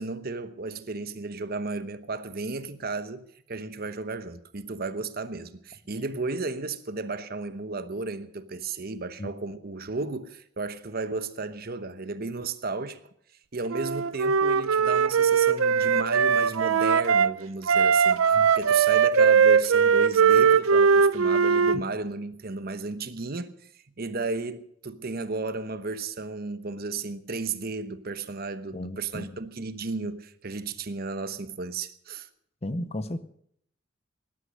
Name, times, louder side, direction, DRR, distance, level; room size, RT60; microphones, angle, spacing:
voice 1, 0.0-13.0 13.5-23.7 24.0-32.3, right 3 dB, 45° right, 1.0 m, -34 dB
Wind instrument woodwind instrument, 13.7-17.3 17.7-21.8, right 6 dB, 85° right, 0.7 m, -20 dB
voice 2, 28.7-29.4 32.6-33.2, left 1 dB, 30° left, 0.8 m, -34 dB
18.5 x 11.5 x 6.4 m
head